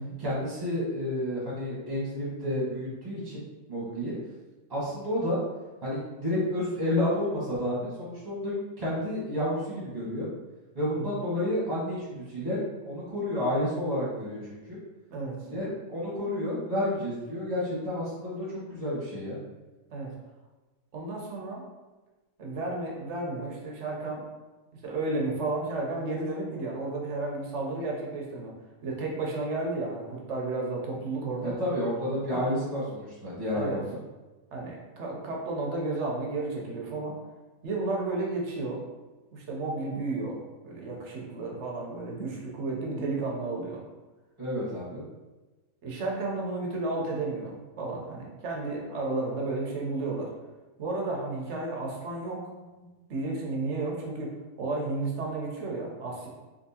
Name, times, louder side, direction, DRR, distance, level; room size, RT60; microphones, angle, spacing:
voice 1, 0.2-4.1 4.7-5.4 5.8-10.3 10.7-14.6 15.5-19.4 31.4-34.0 44.4-45.0, left 1 dB, 15° right, -8 dB, 0.9 m, -30 dB
voice 2, 20.9-21.6 22.4-24.2 24.8-28.5 28.8-31.5 32.3-32.5 33.5-33.8 34.5-37.1 37.6-38.8 39.3-43.8 45.8-50.3 50.8-52.4 53.1-54.3 54.6-56.3, right 2 dB, 60° right, -1 dB, 0.9 m, -32 dB
3.5 x 2.7 x 2.8 m, 1.2 s
omnidirectional pair, 1.6 m